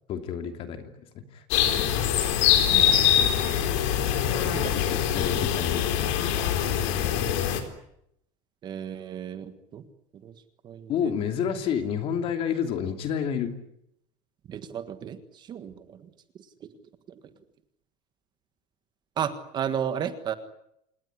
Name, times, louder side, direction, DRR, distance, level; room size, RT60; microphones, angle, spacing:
voice 1, 0.1-1.8 4.3-5.9 10.9-13.5, left 8 dB, 35° left, 7 dB, 2.9 m, -30 dB
sound 1, 1.5-7.6, left 10 dB, 70° left, 4.3 m, -23 dB
voice 2, 2.7-3.1 4.4-4.9 8.6-9.8 10.2-10.3 10.6-11.1 14.5-16.1 16.6-16.7 17.1-17.2 19.2-20.3, right 8 dB, 25° right, 10 dB, 1.6 m, -34 dB
27.5 x 19.5 x 10.0 m, 0.77 s
cardioid pair, 170°, 16 cm